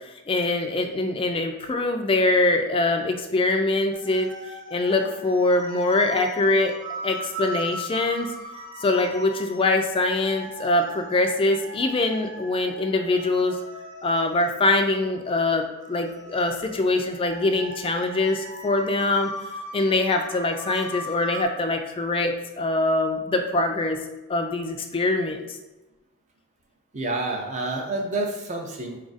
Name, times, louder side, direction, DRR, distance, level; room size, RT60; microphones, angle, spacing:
voice 1, 0.3-4.3 4.7-6.7 7.0-8.3 8.8-13.6 14.0-19.3 19.7-24.0 24.3-25.6, left 2 dB, 25° left, 4 dB, 0.3 m, -23 dB
sound 1, 3.9-21.5, equal, 60° right, 0.9 m, -39 dB
voice 2, 26.9-29.0, right 2 dB, 30° right, 1 dB, 0.5 m, -28 dB
4.1 x 2.4 x 3.9 m, 1.1 s
head